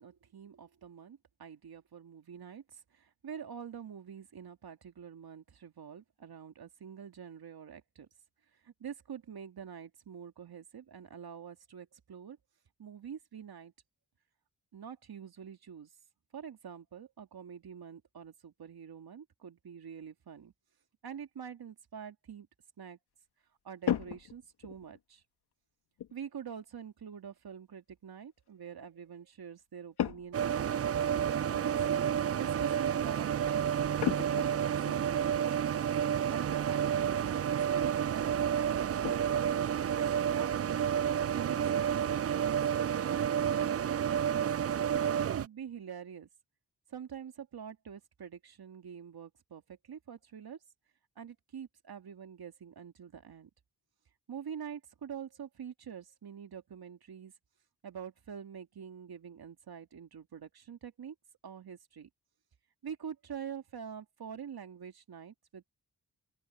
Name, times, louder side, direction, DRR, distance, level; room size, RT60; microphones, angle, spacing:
voice 1, 0.0-8.1 8.6-12.4 12.8-13.7 14.7-15.9 16.3-20.5 21.0-22.5 22.8-23.0 23.6-25.2 26.1-35.8 36.3-40.9 41.3-44.4 45.1-46.3 46.9-50.6 51.2-53.5 54.3-57.3 57.8-61.1 61.4-62.1 62.8-65.7, right 7 dB, 70° right, 2.7 m, -46 dB
sound 1, 23.9-25.0 26.0-26.2 30.0-30.5 30.8-30.9 31.5-31.7 34.0-35.0 36.4-36.5 36.9-37.0 37.5-37.7 38.1-38.2 38.6-39.3, left 9 dB, 90° left, 1.9 m, -35 dB
sound 2, 30.3-45.5, right 9 dB, 40° right, 0.4 m, -30 dB
open air
supercardioid pair, 45°, 38 cm